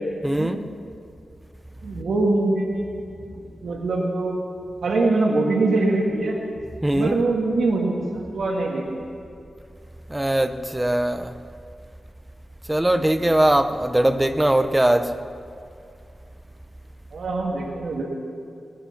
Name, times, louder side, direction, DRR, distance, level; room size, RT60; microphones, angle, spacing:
voice 1, 0.2-0.6 6.8-7.2 10.1-11.3 12.7-15.1, right 1 dB, 10° right, 0.7 m, -20 dB
voice 2, 1.8-4.4 4.8-6.3 6.9-9.0 13.0-13.1 17.1-18.0, right 2 dB, 75° right, 2.0 m, -23 dB
19.5 x 11.5 x 5.9 m
wide cardioid pair, 160°, 0 cm